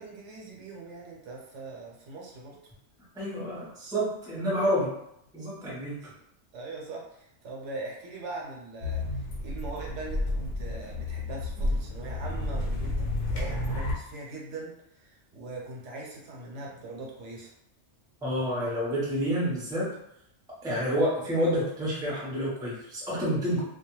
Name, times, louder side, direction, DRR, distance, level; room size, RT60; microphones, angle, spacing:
voice 1, 0.0-2.6 6.0-6.1 6.5-17.5, right 2 dB, 75° right, -2 dB, 1.0 m, -41 dB
voice 2, 3.1-4.9 5.3-6.0 18.2-19.9 20.6-23.6, equal, 5° right, -6 dB, 0.5 m, -28 dB
sound 1, 8.8-13.9, left 2 dB, 65° left, 0.8 m, -31 dB
2.3 x 2.2 x 3.0 m, 0.78 s
omnidirectional pair, 1.2 m